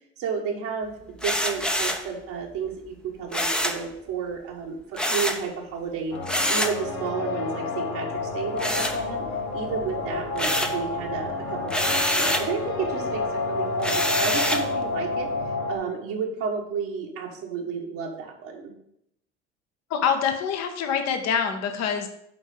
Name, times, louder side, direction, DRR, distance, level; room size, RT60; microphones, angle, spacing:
voice 1, 0.2-0.9 1.2-6.1 6.5-9.3 9.5-15.3 15.7-18.7, right 6 dB, 60° right, -1 dB, 1.4 m, -32 dB
sound 1, 1.2-2.1 3.3-3.8 5.0-5.4 6.3-6.8 8.6-9.4 9.8-10.8 11.7-12.5 13.8-14.7, equal, ahead, 0.7 m, -26 dB
sound 2, 6.1-15.8, left 3 dB, 80° left, 1.3 m, -30 dB
voice 2, 19.9-22.1, left 7 dB, 50° left, 5 dB, 1.0 m, -25 dB
8.9 x 3.7 x 5.0 m, 0.76 s
hypercardioid pair, 70°, 35 cm